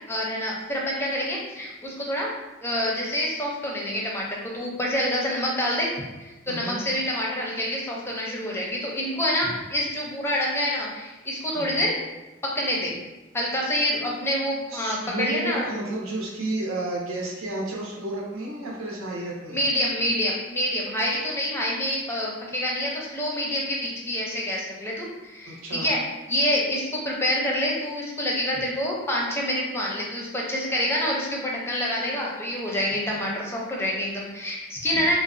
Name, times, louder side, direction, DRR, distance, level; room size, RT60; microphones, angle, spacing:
voice 1, 0.1-2.3 2.6-5.9 6.5-11.9 12.4-13.0 13.3-15.7 19.5-26.0 26.3-35.2, equal, 10° left, -3 dB, 0.5 m, -27 dB
voice 2, 6.5-6.8 11.5-11.9 14.7-19.6 25.5-25.9 33.1-33.2, right 1 dB, 85° right, -3 dB, 0.8 m, -32 dB
3.9 x 2.0 x 2.5 m, 1.1 s
head